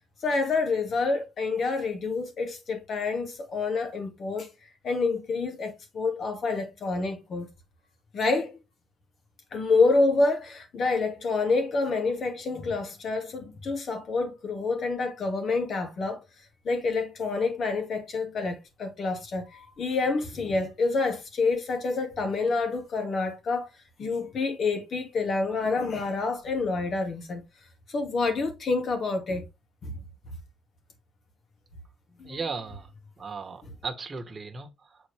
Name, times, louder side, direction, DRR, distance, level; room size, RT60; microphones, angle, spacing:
voice 1, 0.2-4.5 4.8-7.5 8.1-8.6 9.5-16.2 16.6-23.7 24.0-27.4 27.9-29.4 29.8-30.0 32.2-32.4, left 3 dB, 55° left, 2.3 m, -27 dB
voice 2, 32.2-32.9 33.2-35.0, right 4 dB, 30° right, 1.3 m, -36 dB
6.8 x 4.3 x 3.5 m
cardioid pair, 90°, 0 cm